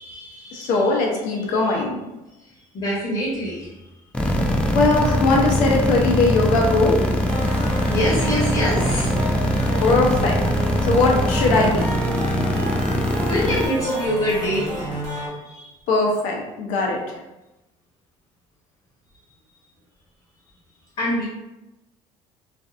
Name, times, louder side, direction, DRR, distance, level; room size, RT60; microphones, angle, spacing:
voice 1, 0.0-1.0 1.4-1.7 2.7-3.7 7.8-9.8 13.3-15.8 21.0-21.2, equal, 40° left, -6 dB, 0.8 m, -26 dB
voice 2, 0.5-2.0 4.7-7.1 9.8-10.4 10.9-12.0 15.9-17.0, left 3 dB, 80° left, -1 dB, 0.7 m, -20 dB
sound 1, 4.1-13.6, left 1 dB, 10° left, 0.3 m, -21 dB
sound 2, 7.3-15.3, right 1 dB, 65° right, 0.9 m, -30 dB
2.5 x 2.4 x 2.4 m, 0.99 s
cardioid pair, 125°, 13 cm